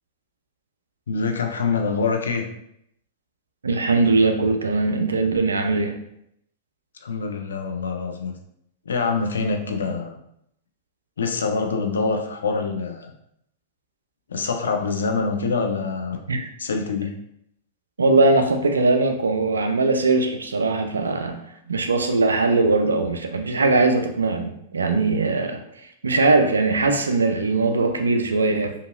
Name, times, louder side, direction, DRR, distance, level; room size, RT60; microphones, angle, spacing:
voice 1, 1.1-2.5 7.0-8.4 8.9-10.2 11.2-13.1 14.3-16.2 16.6-17.1, left 4 dB, 80° left, 4 dB, 0.4 m, -25 dB
voice 2, 3.6-6.0 16.3-16.5 18.0-21.4 21.7-25.6 26.0-28.7, right 3 dB, 85° right, 5 dB, 0.4 m, -20 dB
2.8 x 2.8 x 2.5 m, 0.75 s
hypercardioid pair, 100°, 0 cm